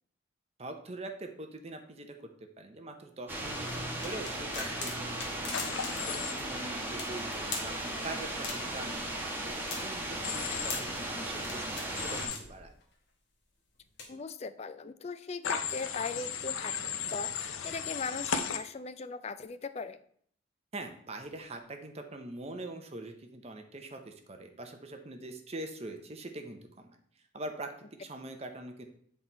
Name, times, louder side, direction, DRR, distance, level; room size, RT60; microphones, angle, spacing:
voice 1, 0.6-2.1 2.6-5.7 6.1-12.7 20.7-27.0 27.3-28.9, right 2 dB, 30° right, 5 dB, 0.7 m, -43 dB
sound 1, 3.3-12.3, right 1 dB, 10° right, 1.1 m, -37 dB
sound 2, 4.0-6.1 6.4-6.5 7.0-7.7 8.4-8.8 9.3-11.0 11.4-11.9 12.3-12.8 13.8-14.0, left 4 dB, 60° left, 1.6 m, -41 dB
Human voice / Train, 5.5-6.3 10.2-10.8 11.9-12.4 15.4-18.6, left 7 dB, 85° left, 0.6 m, -35 dB
voice 2, 14.1-16.7 17.1-20.0, left 4 dB, 35° left, 11 dB, 0.4 m, -39 dB
7.9 x 4.1 x 4.4 m, 0.62 s
head